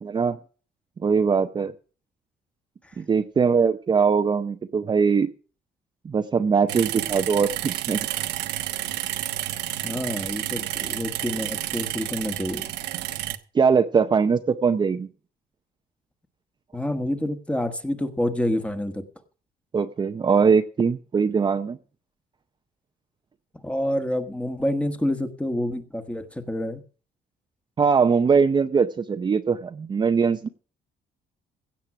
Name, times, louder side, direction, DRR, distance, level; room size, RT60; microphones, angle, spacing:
voice 1, 0.0-0.4 1.0-1.7 3.0-5.3 6.0-8.0 13.5-15.1 19.7-21.8 27.8-30.5, right 5 dB, 25° right, 7 dB, 0.6 m, -21 dB
sound 1, 6.7-13.4, right 13 dB, 85° right, 1.1 m, -30 dB
voice 2, 9.8-12.7 16.7-19.0 23.6-26.8, left 1 dB, 5° left, 8 dB, 1.3 m, -28 dB
16.5 x 7.5 x 5.9 m, 0.39 s
cardioid pair, 140°, 17 cm